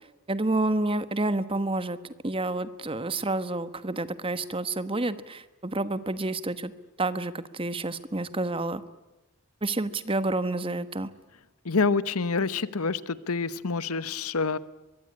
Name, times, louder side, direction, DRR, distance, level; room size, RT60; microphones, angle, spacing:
voice 1, 0.3-2.0 2.2-6.7 7.0-8.8 9.6-11.1, right 2 dB, 25° right, 13 dB, 1.2 m, -29 dB
voice 2, 11.6-14.6, left 4 dB, 85° left, 16 dB, 1.1 m, -27 dB
23.5 x 23.0 x 9.9 m, 1.0 s
head